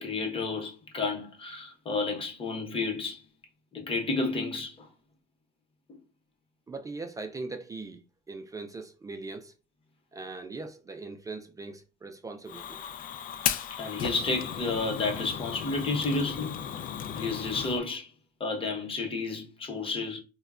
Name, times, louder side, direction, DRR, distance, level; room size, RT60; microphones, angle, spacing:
voice 1, 0.0-3.2 3.7-4.8 13.7-16.6 17.1-18.1 18.4-20.2, left 3 dB, 30° left, 0.9 m, -31 dB
voice 2, 6.7-8.0 8.3-9.6 10.1-12.8, right 3 dB, 20° right, 0.4 m, -40 dB
Fire, 12.5-17.8, left 9 dB, 55° left, 0.4 m, -35 dB
3.9 x 2.2 x 2.4 m
cardioid pair, 110°, 17 cm